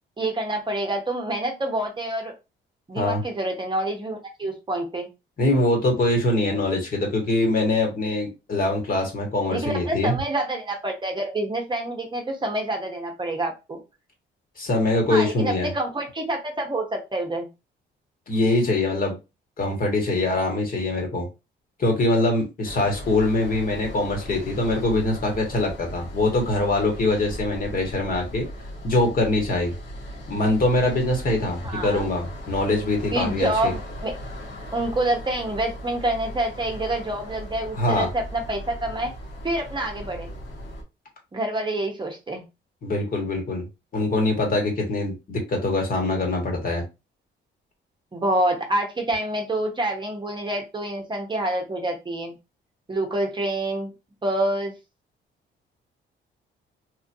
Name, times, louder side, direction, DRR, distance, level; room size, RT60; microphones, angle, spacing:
voice 1, 0.2-2.3 2.9-5.1 9.5-13.8 15.1-17.5 31.6-32.1 33.1-34.1 34.7-39.1 39.4-40.3 41.3-42.4 48.1-52.4 52.9-53.9 54.2-54.7, right 1 dB, 25° right, 2 dB, 0.8 m, -27 dB
voice 2, 5.4-10.1 14.6-15.7 18.3-19.1 19.6-21.3 21.8-28.5 28.8-29.7 30.3-33.7 37.7-38.1 42.8-43.6 43.9-46.8, left 2 dB, 45° left, 1 dB, 1.5 m, -23 dB
sound 1, 22.6-40.8, equal, 70° left, 1.2 m, -38 dB
3.1 x 2.5 x 2.6 m, 0.26 s
cardioid pair, 90°, 20 cm